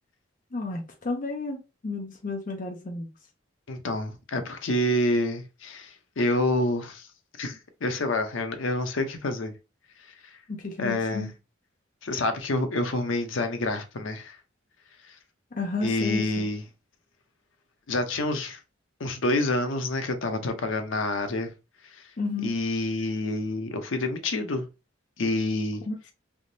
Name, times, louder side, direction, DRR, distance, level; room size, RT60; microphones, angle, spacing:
voice 1, 0.5-3.1 10.5-11.3 15.5-16.5 22.2-22.5 25.9-26.1, left 3 dB, 45° left, 0.6 m, -32 dB
voice 2, 3.7-7.1 7.4-9.5 10.2-10.3 10.8-11.3 12.0-14.4 15.8-16.6 17.9-18.6 19.0-21.5 21.9-22.0 22.4-24.7 25.2-25.8, left 2 dB, 75° left, 0.7 m, -28 dB
3.5 x 2.9 x 2.6 m
head